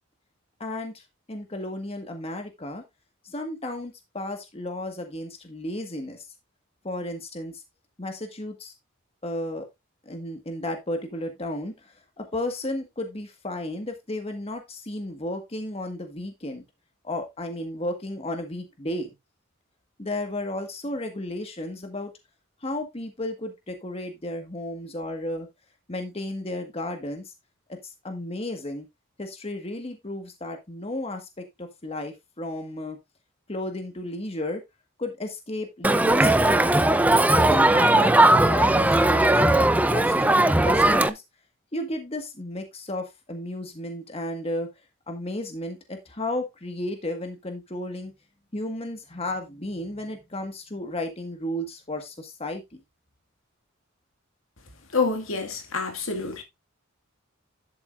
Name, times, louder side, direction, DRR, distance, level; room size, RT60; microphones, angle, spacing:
voice 1, 0.6-1.0 1.3-2.8 3.2-6.3 6.8-7.6 8.0-8.7 9.2-9.7 10.0-16.6 17.0-19.1 20.0-22.1 22.6-25.5 25.9-27.3 27.7-27.8 28.0-28.9 29.2-33.0 33.5-34.6 35.0-36.9 37.3-38.1 38.4-41.2 41.7-44.7 45.1-48.1 48.5-52.8, left 1 dB, 30° left, 1.7 m, -33 dB
Crowd, 35.8-41.1, right 1 dB, 5° right, 0.5 m, -18 dB
voice 2, 54.9-56.4, left 4 dB, 75° left, 2.1 m, -27 dB
11.0 x 7.4 x 2.6 m
head